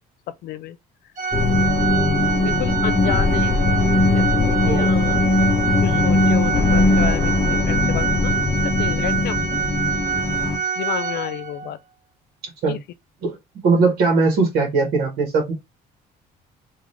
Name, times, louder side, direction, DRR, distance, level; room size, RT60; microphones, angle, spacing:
voice 1, 0.4-0.8 2.4-3.6 4.1-5.3 5.8-8.4 8.6-9.4 10.1-10.2 10.8-11.8 12.7-12.8, left 13 dB, 70° left, 0.4 m, -30 dB
Organ, 1.2-11.7, right 6 dB, 45° right, 1.8 m, -26 dB
sound 1, 1.3-10.6, left 3 dB, 25° left, 0.6 m, -20 dB
voice 2, 13.6-15.5, right 3 dB, 70° right, 1.4 m, -19 dB
3.7 x 2.4 x 3.2 m
cardioid pair, 110°, 17 cm